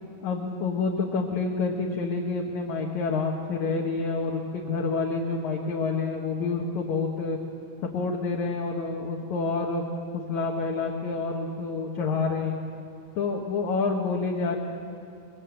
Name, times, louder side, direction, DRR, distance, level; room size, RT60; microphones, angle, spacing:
voice 1, 0.2-7.4 7.8-9.8 10.1-12.6 13.2-14.6, left 4 dB, 65° left, -1 dB, 2.8 m, -28 dB
24.0 x 22.0 x 8.4 m, 2.5 s
omnidirectional pair, 3.9 m